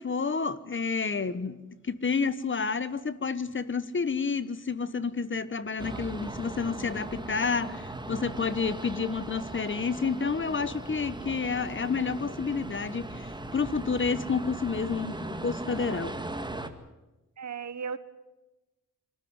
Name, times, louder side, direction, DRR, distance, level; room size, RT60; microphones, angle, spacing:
voice 1, 0.0-1.6 1.8-16.2, left 5 dB, 40° left, 1.2 m, -30 dB
sound 1, 5.8-16.7, right 2 dB, 15° right, 1.9 m, -39 dB
voice 2, 17.4-18.0, right 6 dB, 60° right, 1.3 m, -36 dB
25.5 x 13.0 x 9.7 m
cardioid pair, 85°, 32 cm